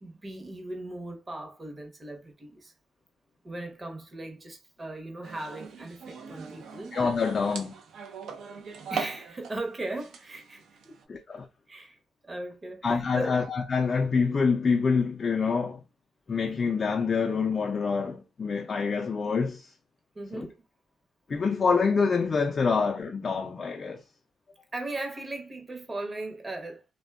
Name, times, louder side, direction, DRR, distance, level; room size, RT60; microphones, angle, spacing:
voice 1, 0.0-2.7 3.4-7.0 8.9-10.9 11.7-12.0 12.2-13.4 20.1-20.6 24.7-26.8, right 2 dB, 25° right, 0.7 m, -38 dB
sound 1, 5.2-9.6 9.9-11.0, right 6 dB, 75° right, 0.4 m, -40 dB
voice 2, 6.9-7.7 11.1-11.5 12.8-15.8 16.3-19.7 20.3-20.5 21.3-24.0, left 5 dB, 40° left, 0.3 m, -26 dB
2.6 x 2.2 x 2.2 m
cardioid pair, 75°, 0 cm